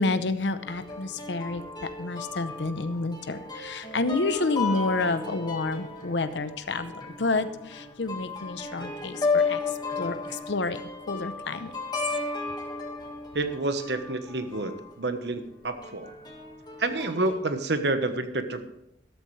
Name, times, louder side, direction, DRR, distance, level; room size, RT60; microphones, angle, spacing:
voice 1, 0.0-1.6 2.0-6.9 7.2-9.6 10.0-10.8 11.1-11.7, left 3 dB, 85° left, 11 dB, 0.8 m, -29 dB
sound 1, 0.6-14.9 15.8-17.3, left 4 dB, 25° left, 1.8 m, -34 dB
voice 2, 13.3-16.1 16.8-18.6, right 2 dB, 70° right, 8 dB, 1.2 m, -29 dB
13.5 x 13.0 x 3.3 m, 0.83 s
head